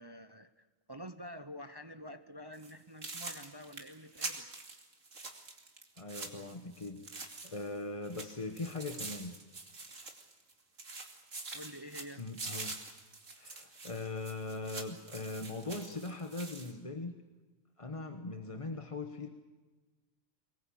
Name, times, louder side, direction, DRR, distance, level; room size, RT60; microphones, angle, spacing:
voice 1, 0.0-4.5 11.5-12.2, equal, 25° right, 10 dB, 0.7 m, -48 dB
sound 1, 2.5-2.7 3.0-7.8 8.0-10.5 10.8-16.7, right 3 dB, 70° right, 2.8 m, -45 dB
voice 2, 6.0-9.3 12.2-12.8 13.3-17.1 17.8-19.3, left 3 dB, 25° left, 6 dB, 1.2 m, -40 dB
23.5 x 20.5 x 8.6 m, 1.3 s
omnidirectional pair, 1.4 m